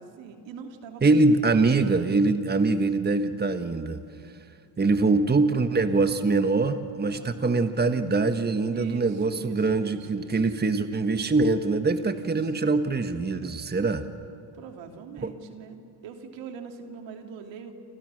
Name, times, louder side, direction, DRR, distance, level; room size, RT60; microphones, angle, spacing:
voice 1, 0.0-1.7 7.0-7.5 8.7-10.5 12.0-12.5 14.5-15.8 16.0-17.7, right 6 dB, 75° right, 4 dB, 3.1 m, -42 dB
voice 2, 1.0-4.0 4.8-14.1 15.2-15.3, right 3 dB, 20° right, 9 dB, 1.5 m, -23 dB
29.0 x 27.5 x 6.5 m, 2.6 s
supercardioid pair, 75°, 45 cm